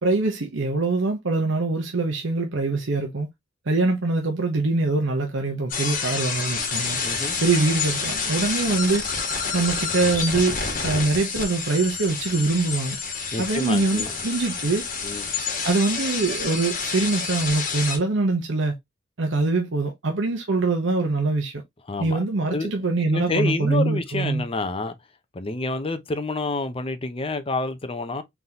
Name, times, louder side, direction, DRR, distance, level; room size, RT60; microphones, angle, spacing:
voice 1, 0.0-3.3 3.7-7.0 7.4-9.0 9.5-10.6 10.8-13.0 13.4-14.8 15.6-18.8 19.2-21.5 22.0-24.4, right 3 dB, 85° right, 0.9 m, -23 dB
sound 1, 5.7-18.0, left 5 dB, 45° left, 1.5 m, -28 dB
voice 2, 7.0-7.4 13.3-14.1 15.0-15.3 21.9-22.2 22.5-22.7 23.1-24.9 25.3-28.2, left 2 dB, 30° left, 0.7 m, -28 dB
4.0 x 3.5 x 2.8 m
head